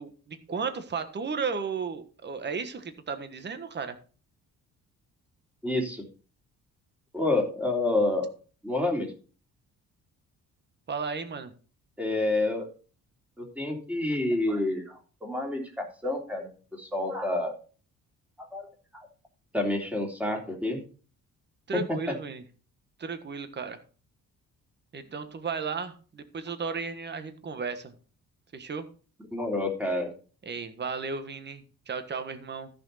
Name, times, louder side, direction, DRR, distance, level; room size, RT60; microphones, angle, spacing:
voice 1, 0.0-4.0 10.9-11.5 21.7-22.4 23.0-23.8 24.9-27.9 28.5-28.8 30.4-32.7, right 5 dB, 35° right, 9 dB, 1.4 m, -34 dB
voice 2, 5.6-6.0 7.1-8.3 8.6-9.1 12.0-12.7 13.4-16.5 16.8-17.5 18.4-18.7 18.9-19.1 19.5-20.8 21.7-21.8 29.3-30.1, left 2 dB, 5° right, 1 dB, 3.2 m, -28 dB
14.0 x 6.4 x 4.1 m, 0.37 s
cardioid pair, 120°, 32 cm